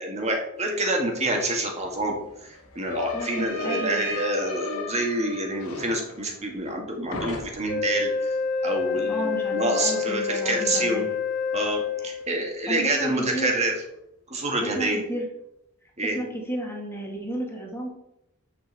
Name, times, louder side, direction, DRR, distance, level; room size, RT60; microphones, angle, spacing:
voice 1, 0.0-8.1 8.6-11.1 11.5-13.7 14.3-15.0 16.0-16.2, right 2 dB, 30° right, 2 dB, 1.8 m, -27 dB
sound 1, 1.2-1.3 1.6-6.8 7.1-7.9, left 3 dB, 85° left, 1.6 m, -35 dB
voice 2, 3.1-4.2 8.9-11.0 12.7-13.5 14.6-15.3 16.0-17.9, right 1 dB, 10° left, -1 dB, 1.9 m, -33 dB
Wind instrument woodwind instrument, 7.7-12.4, left 6 dB, 40° left, 2.3 m, -28 dB
6.5 x 5.5 x 7.2 m, 0.83 s
head